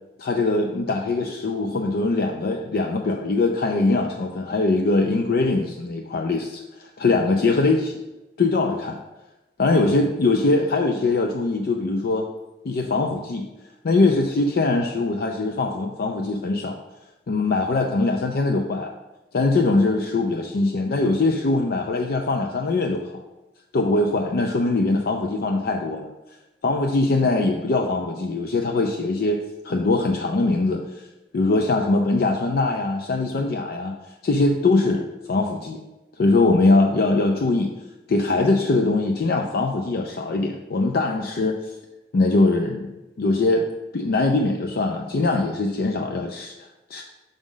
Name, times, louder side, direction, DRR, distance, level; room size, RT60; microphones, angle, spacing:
voice 1, 0.2-8.0 8.4-9.0 9.6-12.3 12.6-13.5 13.8-16.8 17.3-18.9 19.3-23.2 23.7-26.1 26.6-31.1 31.3-34.0 34.2-35.8 36.2-37.7 38.1-41.7 42.1-42.9 43.2-43.6 43.9-47.0, left 3 dB, 60° left, 3 dB, 0.4 m, -22 dB
6.2 x 5.0 x 3.8 m, 1.0 s
head